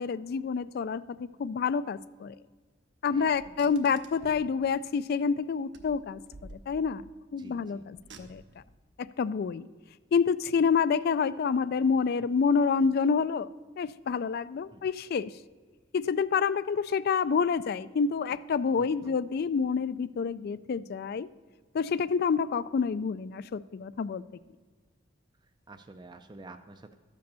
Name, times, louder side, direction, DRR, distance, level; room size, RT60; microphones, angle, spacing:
voice 1, 0.0-2.4 3.0-7.0 7.3-8.4 9.0-9.7 10.1-13.5 13.8-15.3 15.9-21.3 21.7-24.2, left 5 dB, 55° left, 17 dB, 0.3 m, -28 dB
voice 2, 3.1-4.0 7.4-7.9 14.7-14.8 18.7-19.1 25.7-27.0, right 2 dB, 25° right, 7 dB, 0.4 m, -50 dB
Car, 3.3-4.5 5.7-7.1 7.9-8.7, right 2 dB, 65° right, 1.0 m, -51 dB
13.0 x 5.2 x 6.8 m, 1.5 s
head